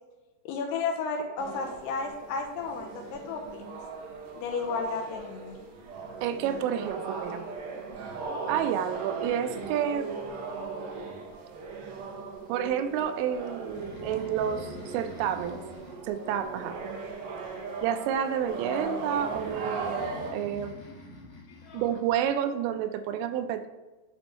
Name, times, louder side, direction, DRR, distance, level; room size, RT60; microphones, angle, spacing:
voice 1, 0.5-3.6 4.3-5.6 21.5-21.9, left 4 dB, 80° left, 3 dB, 2.5 m, -33 dB
Pub(short), 1.4-20.3, right 4 dB, 75° right, 2.4 m, -38 dB
voice 2, 6.2-7.4 8.5-10.1 12.5-15.6 16.0-16.8 17.8-20.8 21.7-23.7, right 9 dB, 90° right, 8 dB, 2.8 m, -29 dB
Breathing, 13.6-17.3 19.1-22.2, left 2 dB, 60° left, 2.0 m, -46 dB
7.8 x 4.2 x 3.1 m, 1.2 s
omnidirectional pair, 5.0 m